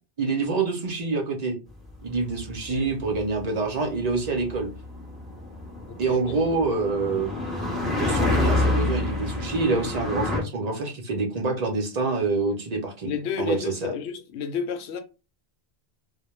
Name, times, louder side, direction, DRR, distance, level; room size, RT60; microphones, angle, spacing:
voice 1, 0.2-1.6 2.0-4.7 6.0-7.3 8.0-13.1 13.4-13.9, right 4 dB, 50° right, 0.6 m, -26 dB
sound 1, 1.9-10.4, left 2 dB, ahead, 0.5 m, -28 dB
voice 2, 5.9-6.2 13.1-15.0, left 6 dB, 85° left, 0.9 m, -31 dB
2.2 x 2.0 x 3.0 m
omnidirectional pair, 1.1 m